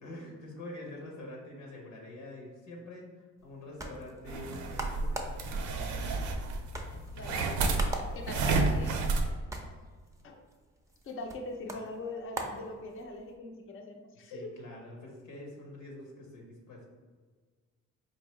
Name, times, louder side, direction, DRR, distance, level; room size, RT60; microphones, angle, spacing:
voice 1, 0.0-5.2 7.2-7.8 14.2-16.9, left 1 dB, 85° left, -1 dB, 1.0 m, -46 dB
sound 1, 3.4-13.3, right 2 dB, 10° right, 0.5 m, -44 dB
sound 2, 4.3-9.3, right 3 dB, 80° right, 0.5 m, -31 dB
voice 2, 7.1-9.1 10.2-10.4 11.0-14.5, left 2 dB, 45° left, 3 dB, 0.6 m, -42 dB
4.5 x 2.6 x 3.1 m, 1.5 s
cardioid pair, 90°, 30 cm